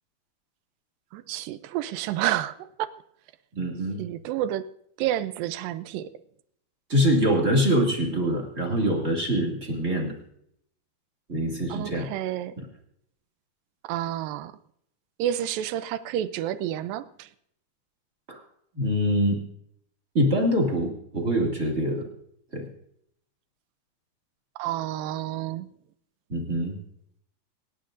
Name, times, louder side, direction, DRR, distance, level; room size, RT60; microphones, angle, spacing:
voice 1, 1.1-2.9 4.0-4.7 5.0-6.1 11.7-12.5 13.8-14.5 15.2-17.3 24.6-25.7, right 12 dB, 80° right, 2.1 m, -30 dB
voice 2, 3.5-4.0 6.9-10.1 11.3-12.1 18.3-18.4 18.8-19.4 20.1-22.1 22.5-22.7 26.3-26.8, equal, 25° right, 1.7 m, -24 dB
25.0 x 11.0 x 2.6 m
omnidirectional pair, 4.6 m